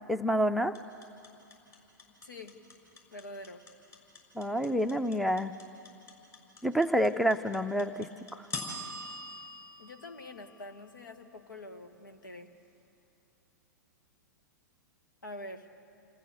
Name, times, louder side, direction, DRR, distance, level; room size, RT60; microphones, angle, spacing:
voice 1, 0.1-0.7 4.4-5.5 6.6-8.5, equal, ahead, 11 dB, 0.5 m, -28 dB
sound 1, 0.7-10.9, left 2 dB, 30° left, 6.0 m, -43 dB
voice 2, 2.2-2.6 3.1-3.6 9.8-12.5 15.2-15.7, left 1 dB, 85° left, 6 dB, 1.8 m, -45 dB
29.5 x 14.5 x 6.9 m, 2.9 s
figure-of-eight pair, 110°, 10 cm